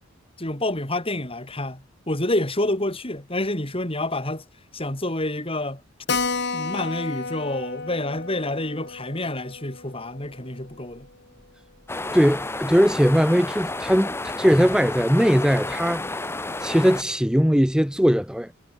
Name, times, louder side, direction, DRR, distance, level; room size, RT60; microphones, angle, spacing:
voice 1, 0.4-4.4 4.7-5.8 6.5-11.1, left 1 dB, 30° left, 4.9 m, -28 dB
Keyboard (musical), 6.1-11.1 11.4-11.5 11.8-11.9 12.2-12.3 12.8-13.2, left 4 dB, 60° left, 4.1 m, -32 dB
sound 1, 11.9-17.0, left 2 dB, 10° left, 0.9 m, -31 dB
voice 2, 12.1-16.0 16.6-18.5, equal, 5° right, 1.8 m, -20 dB
head